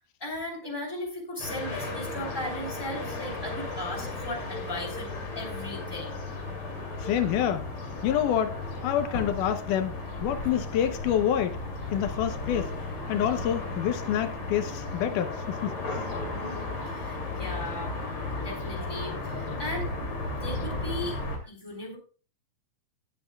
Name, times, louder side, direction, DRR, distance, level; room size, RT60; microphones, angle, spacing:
voice 1, 0.2-5.1 5.3-6.2 16.4-17.9 18.4-19.9 20.3-22.0, left 1 dB, 5° left, 3.2 m, -37 dB
sound 1, 1.4-21.4, left 2 dB, 45° left, 3.2 m, -34 dB
voice 2, 7.0-7.7 8.0-9.9 10.2-11.6 11.9-12.7 13.1-15.7, left 10 dB, 85° left, 2.4 m, -27 dB
19.0 x 7.9 x 2.3 m
omnidirectional pair, 3.6 m